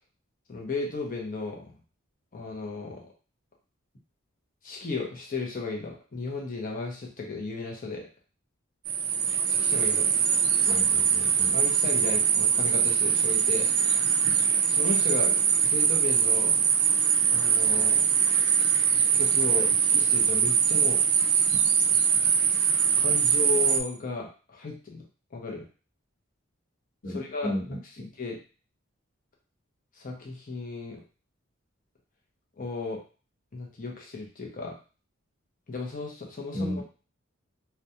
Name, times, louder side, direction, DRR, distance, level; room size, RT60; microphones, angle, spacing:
voice 1, 0.5-1.8 2.3-3.0 4.6-8.1 9.5-10.1 11.5-13.7 14.7-15.4 15.6-16.6 17.3-18.0 19.1-21.0 22.9-25.7 27.1-27.6 28.0-28.4 29.9-31.0 32.6-33.0 33.5-34.8 35.7-36.8, left 3 dB, 40° left, 0 dB, 0.6 m, -35 dB
sound 1, 8.9-23.8, right 7 dB, 75° right, 0.3 m, -23 dB
voice 2, 10.6-11.6 27.0-28.0 36.5-36.8, left 1 dB, 65° left, -5 dB, 1.1 m, -34 dB
2.3 x 2.2 x 2.7 m, 0.36 s
head